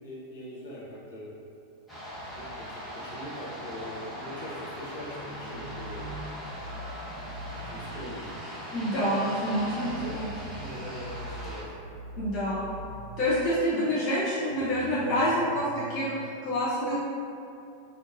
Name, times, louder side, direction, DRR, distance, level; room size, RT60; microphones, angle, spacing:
voice 1, 0.0-1.3 2.3-6.0 7.6-8.3 9.9-11.7 13.8-13.9, equal, 60° left, -8 dB, 1.0 m, -42 dB
sound 1, 1.9-11.6, equal, ahead, 1.0 m, -40 dB
sound 2, 5.5-8.1 9.8-13.5 14.5-16.2, right 1 dB, 75° right, 0.6 m, -43 dB
voice 2, 8.7-10.3 12.1-12.7 13.2-16.1 16.4-17.0, equal, 40° left, -10 dB, 0.7 m, -27 dB
4.5 x 2.3 x 2.5 m, 2.7 s
figure-of-eight pair, 90°, 0 cm